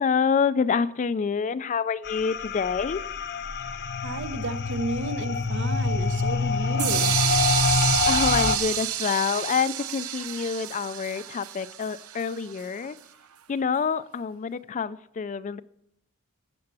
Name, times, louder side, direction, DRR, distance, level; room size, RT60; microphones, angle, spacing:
voice 1, 0.0-3.0 7.8-13.0 13.5-15.6, left 6 dB, 35° left, 14 dB, 0.4 m, -27 dB
sound 1, 2.0-8.6, left 4 dB, 55° left, 0.7 m, -26 dB
voice 2, 4.0-7.1, right 2 dB, 60° right, 11 dB, 0.9 m, -32 dB
sound 2, 6.8-12.6, right 11 dB, 90° right, 0.7 m, -28 dB
16.5 x 6.9 x 6.8 m, 0.78 s
head